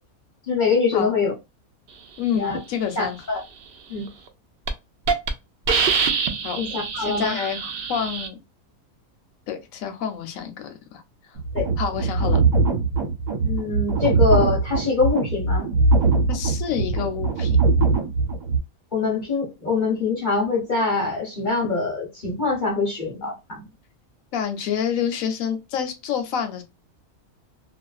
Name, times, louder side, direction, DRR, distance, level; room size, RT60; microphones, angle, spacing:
voice 1, 0.4-1.3 2.3-2.6 3.0-3.4 3.9-4.1 6.5-7.4 11.5-11.7 13.4-15.7 18.9-23.7, left 4 dB, 40° left, 0.8 m, -24 dB
voice 2, 2.2-3.2 6.4-6.6 7.0-8.4 9.5-11.0 11.8-12.4 16.3-17.6 24.3-26.6, left 8 dB, 70° left, 0.9 m, -28 dB
Hiss, 4.1-4.3 4.7-4.8 5.1-5.3 5.7-8.3, right 5 dB, 85° right, 0.5 m, -24 dB
sound 1, 11.3-18.6, right 4 dB, 65° right, 1.2 m, -21 dB
2.4 x 2.3 x 2.3 m
omnidirectional pair, 1.5 m